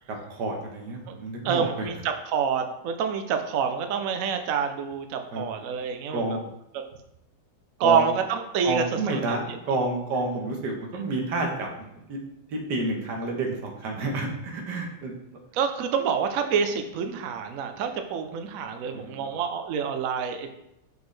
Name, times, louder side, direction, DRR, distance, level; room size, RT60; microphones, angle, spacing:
voice 1, 0.1-1.9 5.3-5.5 6.1-6.4 7.8-8.0 8.6-9.4 9.6-12.2 12.5-15.1 18.9-19.2, right 2 dB, 60° right, 0 dB, 1.6 m, -29 dB
voice 2, 1.4-6.4 6.7-6.8 7.8-8.9 9.1-9.6 15.5-20.5, right 6 dB, 85° right, 6 dB, 0.7 m, -27 dB
6.0 x 5.2 x 3.2 m, 0.83 s
omnidirectional pair, 2.2 m